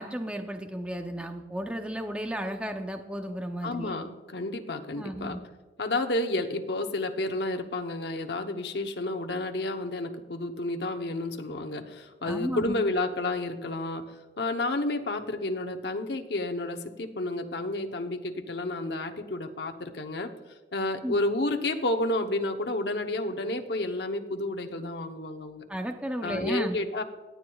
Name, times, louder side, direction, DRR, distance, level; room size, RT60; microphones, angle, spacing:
voice 1, 0.0-4.0 5.0-5.4 12.3-12.8 21.0-21.2 25.7-26.8, equal, 5° right, 5 dB, 0.6 m, -33 dB
voice 2, 3.6-5.4 5.8-14.0 14.4-20.3 20.7-25.6 26.2-27.0, left 2 dB, 70° left, 5 dB, 0.8 m, -31 dB
17.5 x 9.3 x 2.3 m, 1.2 s
head